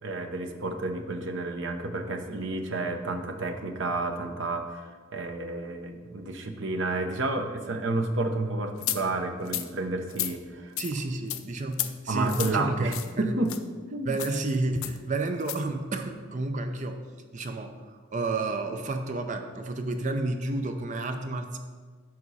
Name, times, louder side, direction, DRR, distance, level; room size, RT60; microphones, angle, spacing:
voice 1, 0.0-10.7 12.1-13.5 13.9-14.2, right 2 dB, 60° right, 5 dB, 0.8 m, -30 dB
sound 1, 8.8-9.0 9.5-9.7 10.1-10.3 10.8-10.9 11.3-11.4 11.7-11.9 12.3-12.5 12.9-13.1 13.5-13.6 14.1-14.4 14.8-15.0 15.4-15.6, left 13 dB, 80° left, 0.5 m, -32 dB
voice 2, 10.8-13.5 14.0-17.0 17.3-21.6, right 2 dB, 35° right, 6 dB, 0.5 m, -31 dB
9.6 x 6.1 x 4.1 m, 1.5 s
head